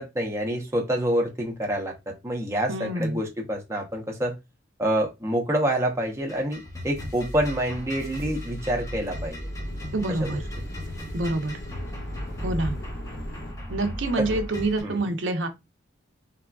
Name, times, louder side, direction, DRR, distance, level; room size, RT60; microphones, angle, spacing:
voice 1, 0.0-4.4 4.8-9.5 10.1-10.4 14.2-14.4 14.8-15.0, right 1 dB, 15° right, 0.5 m, -27 dB
voice 2, 2.7-3.2 9.9-10.4 11.1-11.6 12.4-12.8 13.7-15.5, right 2 dB, 80° right, 0.6 m, -27 dB
sound 1, 6.1-14.8, equal, 15° left, 0.8 m, -36 dB
sound 2, 7.0-7.5 8.0-13.5, left 1 dB, 55° left, 0.7 m, -42 dB
3.3 x 2.3 x 2.2 m
head